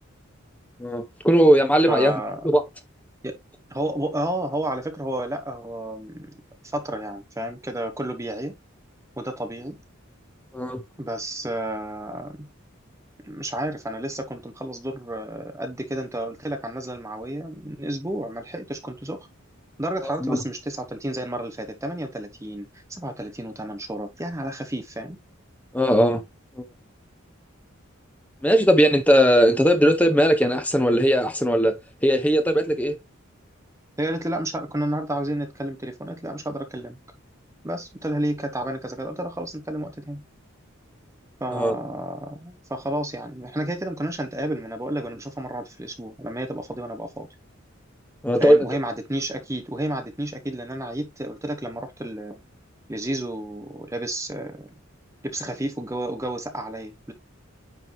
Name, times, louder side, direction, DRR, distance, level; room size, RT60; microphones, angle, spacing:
voice 1, 0.8-2.6 10.5-10.8 20.2-20.4 25.7-26.2 26.6-26.7 28.4-31.8 32.0-33.0 41.5-41.8 48.2-48.7, equal, 5° left, 1.2 m, -19 dB
voice 2, 1.9-2.5 3.2-3.4 3.7-6.3 6.7-8.5 9.2-9.8 11.0-12.5 13.2-19.3 19.8-25.2 34.0-37.0 37.6-40.2 41.4-47.3 48.4-52.4 52.9-54.7 55.2-57.1, right 1 dB, 15° right, 1.0 m, -31 dB
9.3 x 3.9 x 3.0 m
head